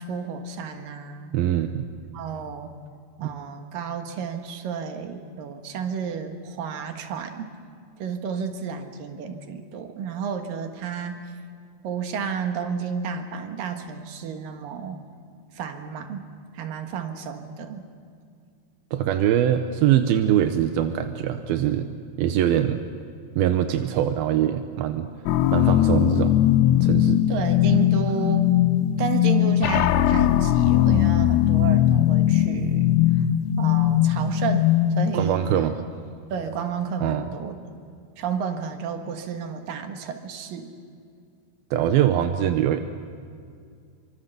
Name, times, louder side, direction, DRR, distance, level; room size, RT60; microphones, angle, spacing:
voice 1, 0.0-1.3 2.1-2.7 3.2-7.5 8.0-11.2 11.8-15.0 15.5-17.9 27.3-28.5 29.0-32.9 33.6-35.6 36.3-37.6 38.2-40.7, right 6 dB, 60° right, 5 dB, 2.9 m, -31 dB
voice 2, 1.3-1.9 3.2-3.3 18.9-21.9 22.2-22.8 23.4-25.1 25.5-26.3 26.8-27.2 35.1-35.8 37.0-37.3 41.7-42.8, right 11 dB, 75° right, 7 dB, 2.3 m, -22 dB
sound 1, 25.3-35.2, left 12 dB, 80° left, 2.9 m, -20 dB
26.5 x 25.5 x 6.8 m, 2.3 s
omnidirectional pair, 5.2 m